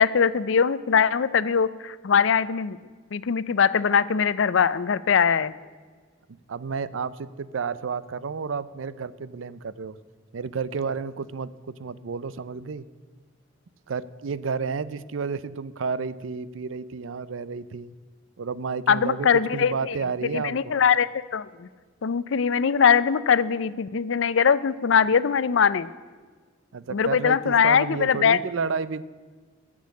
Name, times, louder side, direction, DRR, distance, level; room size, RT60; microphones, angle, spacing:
voice 1, 0.0-2.8 3.1-5.5 18.9-20.0 20.3-21.7 22.0-25.9 26.9-28.4, left 6 dB, 70° left, 17 dB, 0.5 m, -21 dB
voice 2, 6.5-10.0 10.3-11.5 11.8-12.9 13.9-17.9 18.4-20.8 26.7-29.0, right 5 dB, 75° right, 17 dB, 0.5 m, -31 dB
14.5 x 6.2 x 8.3 m, 1.5 s
head